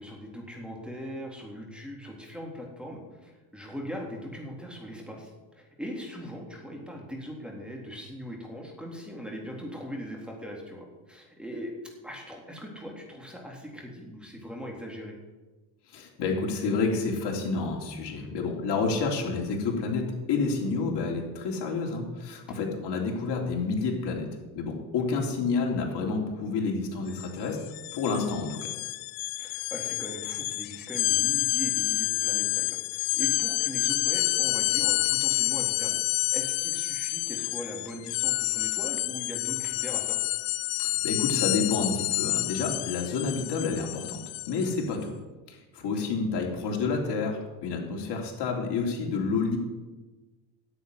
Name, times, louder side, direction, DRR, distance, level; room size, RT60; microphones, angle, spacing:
voice 1, 0.0-11.7 12.0-15.2 18.1-18.3 22.5-22.6 25.0-25.1 29.4-36.0 36.3-40.2 44.8-45.0 45.9-46.1 47.9-48.2, equal, ahead, -1 dB, 3.7 m, -40 dB
voice 2, 15.9-24.3 24.5-27.6 27.9-28.7 40.8-45.1 45.5-49.6, left 4 dB, 55° left, 1 dB, 3.6 m, -29 dB
sound 1, 27.1-27.3 27.6-44.8, left 23 dB, 75° left, 0.6 m, -29 dB
9.8 x 8.5 x 9.7 m, 1.2 s
supercardioid pair, 95°, 50 cm